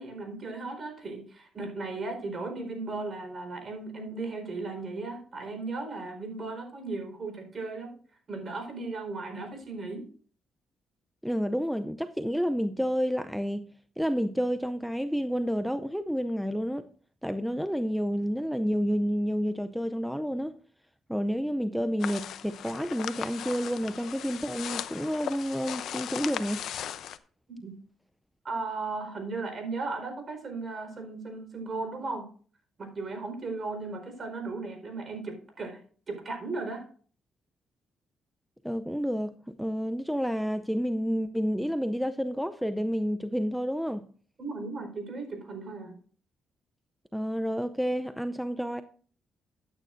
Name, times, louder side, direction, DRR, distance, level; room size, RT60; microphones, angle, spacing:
voice 1, 0.0-8.0 8.3-10.1 27.5-27.8 28.4-32.3 32.8-35.8 36.1-36.9 44.4-45.9, right 3 dB, 40° right, 4.5 m, -36 dB
voice 2, 11.2-13.7 14.0-16.9 17.2-20.5 21.1-26.6 38.6-44.0 47.1-48.8, equal, ahead, 0.5 m, -30 dB
sound 1, 22.0-27.2, left 10 dB, 75° left, 0.7 m, -37 dB
13.0 x 9.1 x 2.6 m
cardioid pair, 90°, 0 cm